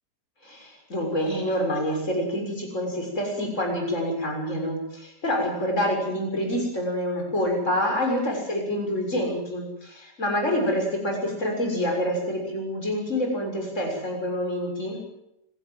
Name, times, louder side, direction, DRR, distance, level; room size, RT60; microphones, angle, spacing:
voice 1, 0.4-15.0, equal, 45° left, 1 dB, 7.0 m, -27 dB
26.0 x 17.0 x 7.8 m, 0.83 s
omnidirectional pair, 1.8 m